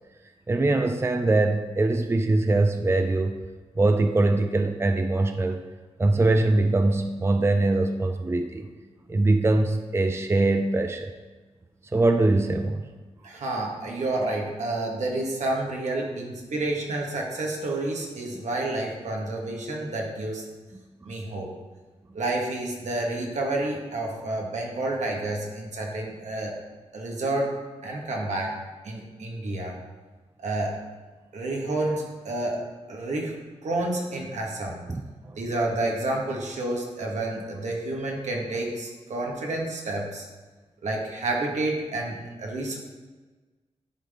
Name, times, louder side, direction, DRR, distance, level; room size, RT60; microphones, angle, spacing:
voice 1, 0.5-3.4 3.8-5.6 6.0-8.7 9.1-11.1 11.9-12.8 20.7-21.1 34.9-35.4, right 2 dB, 20° right, 6 dB, 0.5 m, -23 dB
voice 2, 13.2-20.4 21.0-21.5 22.1-26.5 26.9-27.5 27.8-28.5 28.8-29.7 30.4-30.8 31.3-33.3 33.6-34.8 35.4-40.3 40.8-42.8, right 2 dB, 75° right, -1 dB, 1.4 m, -29 dB
10.5 x 3.8 x 3.6 m, 1.3 s
cardioid pair, 60°, 12 cm